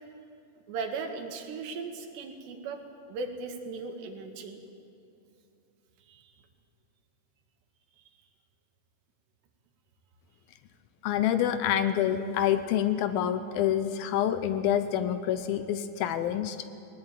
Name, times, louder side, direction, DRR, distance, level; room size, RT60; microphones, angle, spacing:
voice 1, 0.7-2.8 3.1-4.6 6.1-6.3, right 4 dB, 90° right, 5 dB, 4.1 m, -37 dB
voice 2, 11.0-16.6, left 10 dB, 75° left, 11 dB, 2.4 m, -27 dB
20.0 x 19.5 x 9.2 m, 2.8 s
omnidirectional pair, 4.8 m